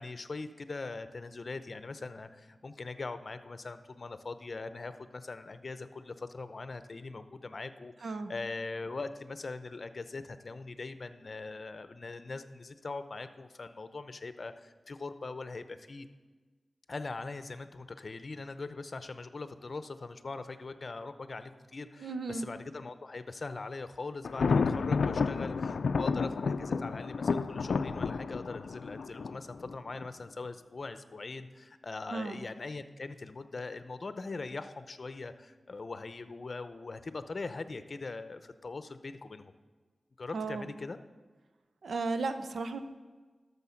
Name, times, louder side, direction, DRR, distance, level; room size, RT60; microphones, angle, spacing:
voice 1, 0.0-16.1 16.9-39.5 40.2-41.0, left 3 dB, 55° left, 11 dB, 0.7 m, -41 dB
voice 2, 8.0-8.3 22.0-22.5 32.1-32.4 40.3-40.7 41.8-42.8, right 3 dB, 85° right, 9 dB, 0.7 m, -34 dB
Thunder, 24.2-30.1, left 5 dB, 85° left, 0.4 m, -31 dB
12.5 x 7.0 x 5.8 m, 1.4 s
wide cardioid pair, 70°, 0 cm